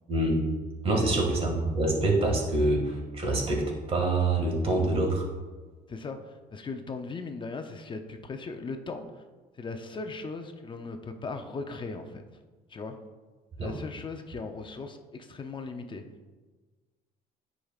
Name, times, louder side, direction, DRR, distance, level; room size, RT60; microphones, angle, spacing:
voice 1, 0.1-0.4 0.8-5.3 13.6-13.7, right 2 dB, 35° right, 0 dB, 2.0 m, -26 dB
voice 2, 6.5-9.0 9.6-12.2 12.7-13.0 13.6-16.0, left 3 dB, 30° left, 6 dB, 0.6 m, -38 dB
9.8 x 5.1 x 2.4 m, 1.3 s
cardioid pair, 110°, 17 cm